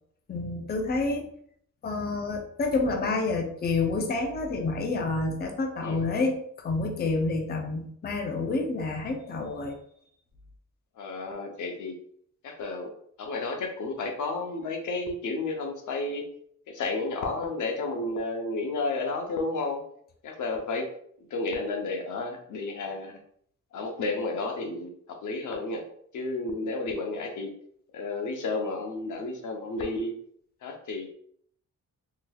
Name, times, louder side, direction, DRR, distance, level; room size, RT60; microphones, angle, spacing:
voice 1, 0.3-1.3 1.8-9.8, left 3 dB, 35° left, 2 dB, 0.5 m, -28 dB
voice 2, 11.0-12.0 12.4-12.9 13.2-16.3 16.7-19.8 20.2-20.9 21.3-23.2 23.7-24.9 25.2-25.8 26.1-27.5 27.9-30.2 30.6-31.1, left 3 dB, 80° left, 3 dB, 0.7 m, -32 dB
3.7 x 2.7 x 2.3 m, 0.66 s
wide cardioid pair, 125°, 30 cm